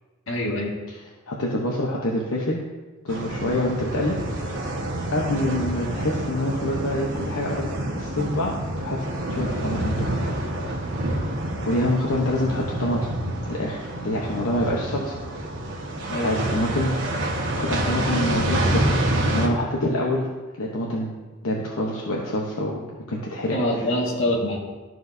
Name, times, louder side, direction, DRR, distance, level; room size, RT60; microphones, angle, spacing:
voice 1, 0.3-0.7 16.1-16.4 23.5-24.6, left 1 dB, 60° left, -3 dB, 1.8 m, -24 dB
voice 2, 1.3-2.6 3.0-4.7 5.1-7.7 8.0-10.1 11.6-13.1 13.5-15.2 16.2-17.0 17.6-20.3 20.6-21.2 21.4-23.6, left 1 dB, 75° left, -3 dB, 0.9 m, -26 dB
sound 1, 3.1-19.5, right 1 dB, 55° right, 1.3 m, -27 dB
13.5 x 4.6 x 2.7 m, 1.2 s
head